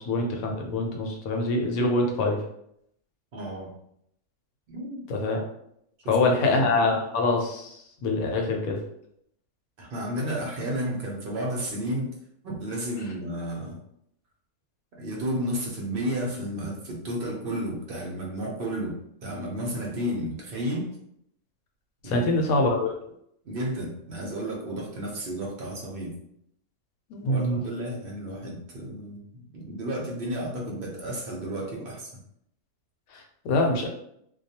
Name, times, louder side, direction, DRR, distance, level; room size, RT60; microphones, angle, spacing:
voice 1, 0.0-2.4 5.1-5.4 6.1-8.8 22.0-22.9 27.1-27.6 33.1-33.9, left 2 dB, 80° left, 2 dB, 1.0 m, -25 dB
voice 2, 3.3-3.8 4.7-5.1 6.0-6.8 9.8-12.1 12.4-13.8 15.0-21.0 22.0-22.3 23.4-26.1 27.3-32.1, equal, 60° right, -1 dB, 0.6 m, -32 dB
2.2 x 2.2 x 2.7 m, 0.73 s
omnidirectional pair, 1.5 m